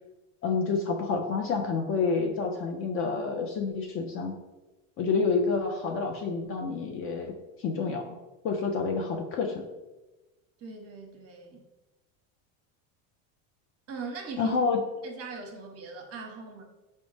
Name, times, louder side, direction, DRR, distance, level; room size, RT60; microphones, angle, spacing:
voice 1, 0.4-4.3 5.0-7.3 7.6-8.2 8.4-9.6 14.4-14.8, left 4 dB, 35° left, 2 dB, 0.4 m, -28 dB
voice 2, 10.6-11.6 13.9-14.6 15.0-16.6, right 4 dB, 35° right, 2 dB, 0.8 m, -40 dB
5.0 x 2.1 x 3.1 m, 1.1 s
supercardioid pair, 115°, 39 cm